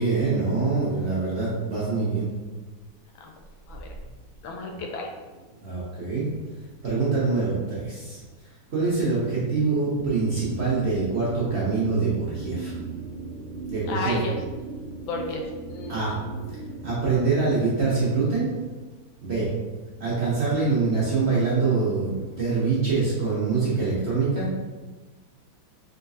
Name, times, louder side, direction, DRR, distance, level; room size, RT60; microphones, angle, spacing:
voice 1, 0.0-2.3 5.6-6.3 6.8-8.2 8.7-12.7 13.7-14.2 15.9-16.1 16.5-16.6 16.8-18.5 19.2-19.5 20.0-24.5, right 4 dB, 45° right, -8 dB, 0.9 m, -24 dB
voice 2, 4.4-5.1 13.9-14.4 15.1-16.2, left 3 dB, 85° left, 2 dB, 1.4 m, -33 dB
sound 1, 9.9-17.2, right 3 dB, 85° right, 1.4 m, -38 dB
3.9 x 3.7 x 2.7 m, 1.3 s
omnidirectional pair, 2.1 m